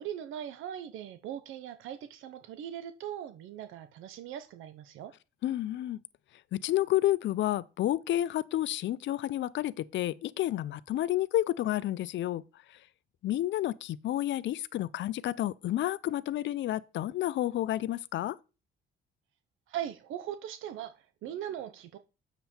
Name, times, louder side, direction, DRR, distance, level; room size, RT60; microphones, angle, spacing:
voice 1, 0.0-5.1 19.7-22.0, right 10 dB, 85° right, 0.8 m, -40 dB
voice 2, 5.4-6.0 6.5-12.4 13.2-18.4, left 13 dB, 70° left, 0.5 m, -30 dB
7.5 x 6.9 x 4.3 m
cardioid pair, 90°, 20 cm